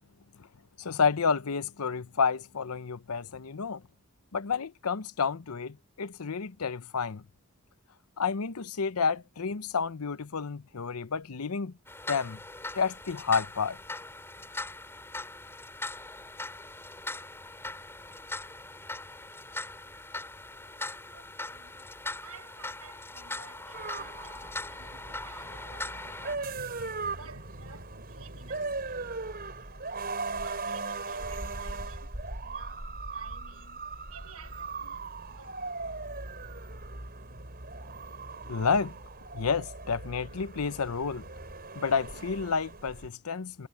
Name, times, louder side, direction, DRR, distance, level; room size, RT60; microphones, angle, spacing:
voice 1, 0.8-3.8 4.3-7.2 8.2-11.7 12.1-12.4 12.7-13.8 38.5-38.9 39.3-41.3 41.7-43.7, left 5 dB, 80° left, 0.8 m, -30 dB
sound 1, 11.9-26.4, left 2 dB, 10° left, 4.8 m, -40 dB
voice 2, 20.3-21.8 22.2-35.8, right 4 dB, 80° right, 5.8 m, -53 dB
sound 2, 23.7-43.1, right 3 dB, 45° right, 5.1 m, -39 dB
head